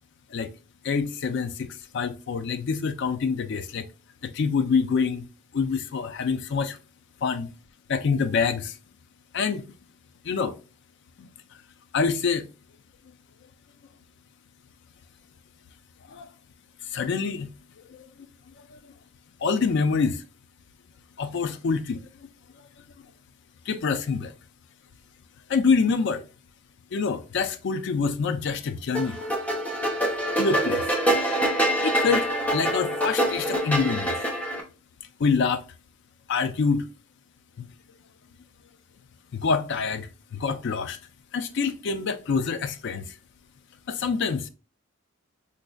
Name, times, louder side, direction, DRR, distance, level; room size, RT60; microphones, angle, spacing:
voice 1, 0.8-3.8 4.2-5.3 5.5-6.8 7.2-7.5 7.9-8.7 9.3-9.6 10.2-10.6 11.2-11.3 11.9-12.5 16.1-16.3 16.9-17.5 17.9-18.1 18.7-18.8 19.4-20.2 21.2-22.0 23.7-24.3 25.5-26.2 26.9-29.2 30.4-30.9 31.8-34.2 35.2-35.6 36.3-36.9 37.6-37.7 39.3-41.0 41.3-43.1 43.9-44.5, left 5 dB, 55° left, 0.4 m, -26 dB
sound 1, 28.9-34.6, equal, 5° left, 0.6 m, -25 dB
4.0 x 2.5 x 2.2 m
head